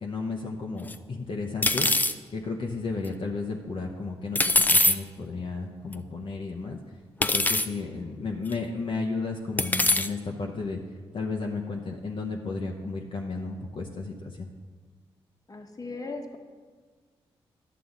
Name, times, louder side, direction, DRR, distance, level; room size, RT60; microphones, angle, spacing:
voice 1, 0.0-1.9 2.3-6.8 7.2-10.8 11.1-14.5, left 3 dB, 55° left, 0 dB, 0.8 m, -33 dB
sound 1, 0.9-1.0 1.6-2.1 4.4-5.0 5.9-6.0 7.2-7.7 8.5-8.6 9.6-10.1, left 2 dB, 15° left, 0.4 m, -22 dB
voice 2, 15.5-16.4, left 3 dB, 35° left, 4 dB, 1.2 m, -37 dB
11.0 x 6.7 x 3.9 m, 1.5 s
supercardioid pair, 50°, 11 cm